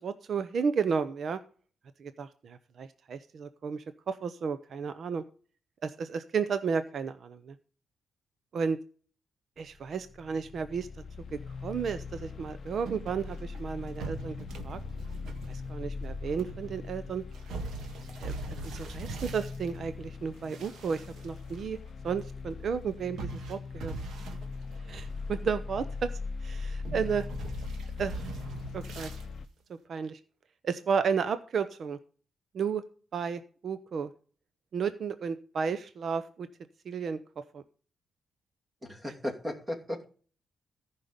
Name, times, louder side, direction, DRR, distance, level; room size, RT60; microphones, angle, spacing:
voice 1, 0.0-1.4 2.0-5.2 5.8-7.5 8.5-8.8 9.6-10.9 11.3-14.3 14.6-14.8 15.5-17.2 18.2-18.4 18.6-21.8 22.0-23.9 24.9-26.1 26.4-27.3 28.0-28.3 28.7-29.1 29.9-30.2 30.6-32.0 32.5-32.8 33.1-34.1 34.7-36.5 36.8-37.2 37.5-37.6, right 6 dB, 55° right, 0.8 m, -33 dB
sound 1, 9.6-29.5, left 4 dB, 45° left, 0.6 m, -40 dB
Scooping Water with Plastic Watering Can, 12.8-19.8 20.3-21.6 21.9-22.0 23.2-25.4 25.8-26.3 26.8-29.3, right 4 dB, 80° right, 1.7 m, -43 dB
voice 2, 38.8-40.1, left 1 dB, 20° right, 2.6 m, -35 dB
14.5 x 5.7 x 5.1 m
cardioid pair, 120°, 0 cm